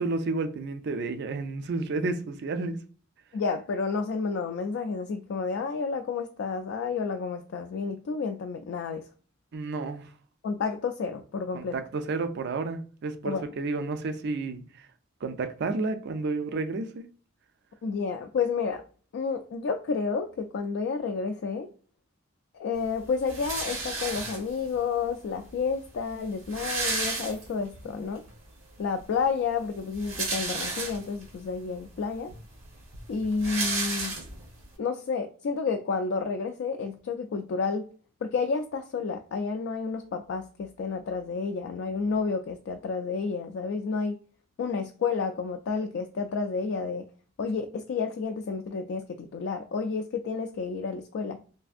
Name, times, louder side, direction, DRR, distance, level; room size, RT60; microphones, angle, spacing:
voice 1, 0.0-2.8 9.5-10.1 11.5-14.9 15.2-17.1, right 3 dB, 55° right, 0.4 m, -31 dB
voice 2, 3.3-9.0 10.4-11.7 13.2-13.4 17.8-18.8 19.1-21.7 22.5-28.2 28.8-32.3 33.1-34.2 34.8-37.9 38.2-44.2 44.6-47.0 47.4-51.4, left 5 dB, 65° left, 0.3 m, -30 dB
sound 1, 23.3-24.7 25.6-25.7 25.9-26.0 26.2-27.8 28.3-28.4 29.8-31.3 31.9-32.0 32.3-34.6, right 3 dB, 80° right, 1.1 m, -32 dB
3.3 x 2.5 x 2.4 m
head